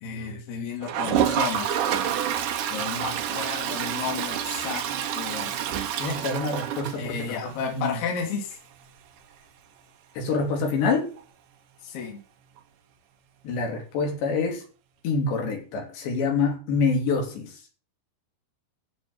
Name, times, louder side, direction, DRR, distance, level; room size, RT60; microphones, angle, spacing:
voice 1, 0.0-1.8 2.7-4.8 5.1-5.5 7.0-8.6 11.8-12.2, left 6 dB, 70° left, 3.9 m, -32 dB
Toilet flush, 0.8-7.5 7.9-8.0 8.2-8.3 8.5-8.6 11.2-11.3 12.6-12.7, right 9 dB, 65° right, 2.3 m, -28 dB
voice 2, 6.0-8.0 10.2-11.1 13.5-14.6 15.0-17.5, left 4 dB, 85° left, 5.3 m, -26 dB
14.0 x 5.2 x 7.9 m
omnidirectional pair, 4.9 m